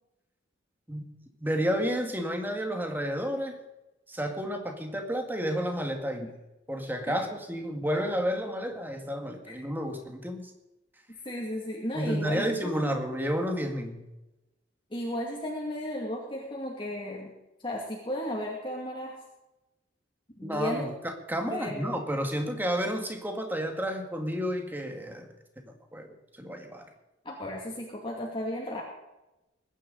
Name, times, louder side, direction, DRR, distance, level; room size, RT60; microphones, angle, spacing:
voice 1, 1.4-3.6 4.1-6.3 6.7-10.5 11.9-14.1 20.4-25.3 25.6-26.9, equal, 10° right, 4 dB, 2.0 m, -31 dB
voice 2, 11.2-13.0 14.9-17.3 17.6-19.2 20.4-20.9 21.5-22.0 27.2-28.8, left 1 dB, 25° left, -3 dB, 2.4 m, -34 dB
21.5 x 10.0 x 4.1 m, 0.98 s
head